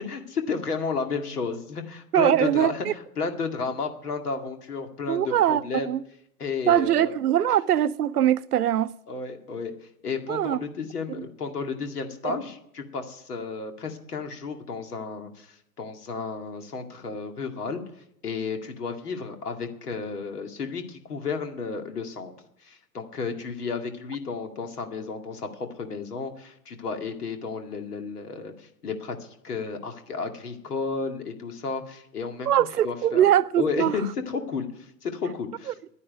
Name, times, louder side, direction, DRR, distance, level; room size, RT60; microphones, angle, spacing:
voice 1, 0.1-2.9 3.2-5.9 6.4-7.2 9.1-9.7 10.0-17.8 18.2-22.3 22.6-25.5 25.8-32.5 32.8-33.3 33.6-35.7, left 4 dB, 75° left, 2.2 m, -32 dB
voice 2, 2.1-2.9 5.1-6.0 6.7-8.9 10.3-10.6 11.2-11.3 12.2-12.4 32.5-33.9 35.7-35.8, right 11 dB, 75° right, 0.7 m, -22 dB
10.0 x 9.8 x 9.3 m
figure-of-eight pair, 115°, 47 cm